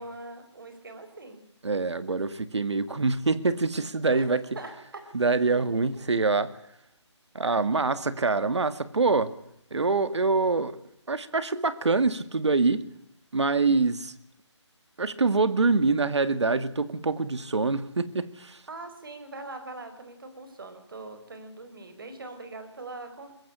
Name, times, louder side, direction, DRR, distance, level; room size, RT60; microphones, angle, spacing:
voice 1, 0.0-1.4 4.1-4.3 4.5-5.1 5.9-6.1 18.7-23.3, right 2 dB, 45° right, 9 dB, 4.7 m, -42 dB
voice 2, 1.6-4.5 5.1-6.5 7.3-9.3 9.7-10.8 11.1-12.8 13.3-14.1 15.0-18.6, right 3 dB, 70° right, 14 dB, 1.9 m, -25 dB
22.5 x 16.5 x 9.9 m, 0.77 s
figure-of-eight pair, 170°, 15 cm